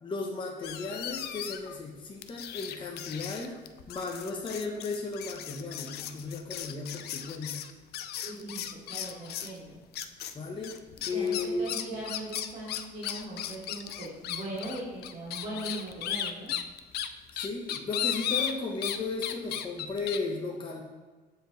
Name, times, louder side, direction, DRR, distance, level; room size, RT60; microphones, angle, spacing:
voice 1, 0.0-3.6 3.9-7.6 10.3-10.8 11.0-11.6 17.3-20.8, left 3 dB, 30° left, 0 dB, 1.0 m, -35 dB
sound 1, 0.6-1.8 2.2-9.6 9.9-10.3 10.6-19.0 19.2-20.2, left 10 dB, 70° left, 0.5 m, -36 dB
voice 2, 8.2-9.8 11.0-16.5, right 1 dB, 45° right, -7 dB, 2.8 m, -39 dB
13.5 x 4.9 x 3.2 m, 1.3 s
cardioid pair, 110°, 17 cm